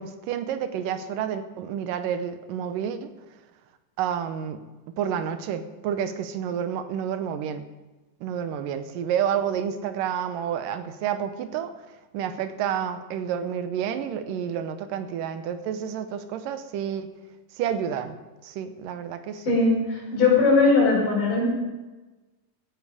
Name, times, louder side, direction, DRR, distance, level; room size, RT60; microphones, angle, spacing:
voice 1, 0.0-3.1 4.0-4.6 5.0-7.6 8.2-11.7 12.1-17.1 17.5-18.2 18.4-19.6, right 8 dB, 85° right, 10 dB, 2.5 m, -29 dB
voice 2, 19.5-21.5, left 3 dB, 75° left, -3 dB, 6.4 m, -20 dB
16.0 x 10.5 x 4.9 m, 1.2 s
omnidirectional pair, 3.8 m